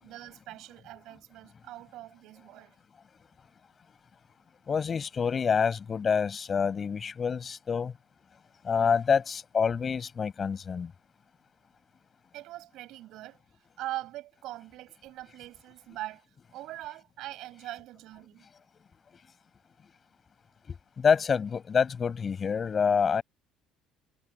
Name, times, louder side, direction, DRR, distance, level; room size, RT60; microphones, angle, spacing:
voice 1, 0.0-2.7 12.3-13.4 13.8-16.2 16.5-18.5, right 16 dB, 70° right, 6.6 m, -42 dB
voice 2, 4.7-7.9 8.6-10.9 21.0-23.2, left 6 dB, 35° left, 5.6 m, -27 dB
cardioid pair, 110°, 0 cm